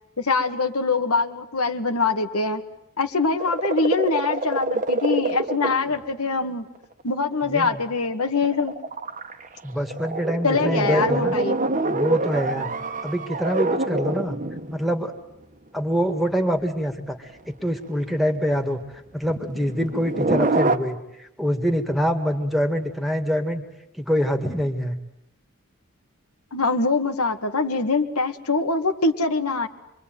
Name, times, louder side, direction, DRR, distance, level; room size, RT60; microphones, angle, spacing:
voice 1, 0.2-2.6 3.0-6.7 7.0-8.7 10.4-11.6 26.5-29.7, left 3 dB, 90° left, 6 dB, 2.0 m, -23 dB
sound 1, 3.4-6.0 6.8-6.9 7.1-7.3 7.6-14.9 16.6-16.7 17.6-18.0 19.2-20.8, right 2 dB, 35° right, 1.2 m, -26 dB
voice 2, 7.5-7.8 9.6-11.4 11.9-12.7 13.0-14.4 14.7-15.1 15.7-18.8 19.1-23.6 24.0-25.0, equal, ahead, 6 dB, 2.0 m, -25 dB
26.5 x 23.5 x 9.3 m, 0.85 s
head